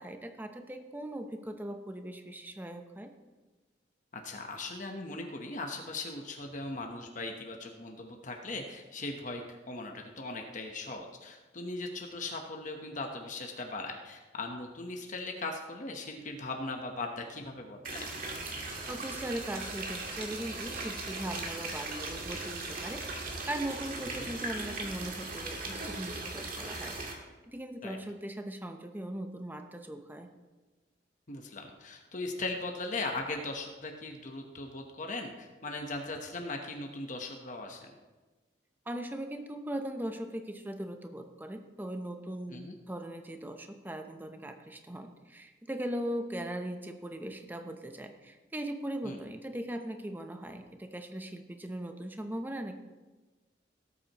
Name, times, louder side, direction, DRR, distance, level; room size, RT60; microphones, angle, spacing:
voice 1, 0.0-3.1 18.9-30.3 38.9-52.7, right 1 dB, 10° right, 5 dB, 0.7 m, -39 dB
voice 2, 4.1-18.1 24.0-24.3 27.8-28.0 31.3-37.9 42.5-42.7 49.0-49.2, left 2 dB, 45° left, 2 dB, 1.0 m, -39 dB
sound 1, 17.8-27.1, right 2 dB, 50° right, 1.8 m, -38 dB
17.5 x 8.5 x 3.0 m, 1.2 s
head